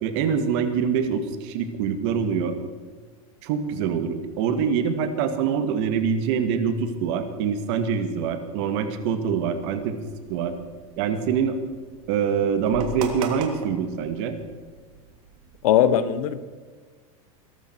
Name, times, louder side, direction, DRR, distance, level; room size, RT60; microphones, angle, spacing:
voice 1, 0.0-2.6 3.4-10.0 10.3-10.5 11.0-11.6 12.1-14.4, right 7 dB, 50° right, 8 dB, 1.8 m, -25 dB
sound 1, 9.6-15.7, right 6 dB, 70° right, 2.9 m, -40 dB
voice 2, 15.6-16.4, left 10 dB, 75° left, 14 dB, 1.2 m, -19 dB
21.5 x 12.0 x 4.5 m, 1.5 s
supercardioid pair, 155°, 18 cm